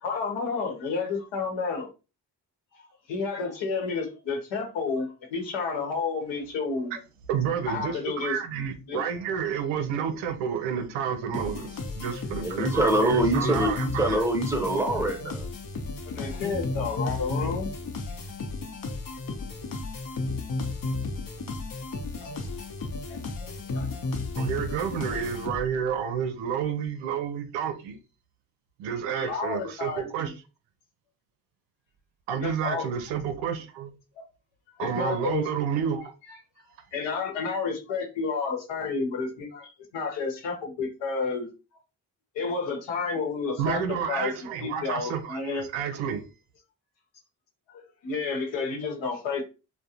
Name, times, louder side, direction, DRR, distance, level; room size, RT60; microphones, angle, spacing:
voice 1, 0.0-1.9 2.7-7.0 7.7-9.0 16.1-17.7 22.2-22.5 23.1-23.9 29.1-30.3 32.4-32.9 34.2-34.3 34.8-35.5 36.3-36.4 36.9-41.5 42.3-43.8 44.1-44.3 44.6-45.7 47.7-49.4, left 4 dB, 75° left, 0.9 m, -31 dB
voice 2, 7.3-14.3 24.4-28.0 28.8-30.3 32.3-33.9 34.8-36.1 43.6-46.3, right 7 dB, 90° right, 0.5 m, -30 dB
sound 1, 11.3-25.9, left 3 dB, 50° left, 0.7 m, -33 dB
voice 3, 12.4-15.4, right 1 dB, 5° right, 0.9 m, -24 dB
2.3 x 2.1 x 2.7 m
hypercardioid pair, 45°, 44 cm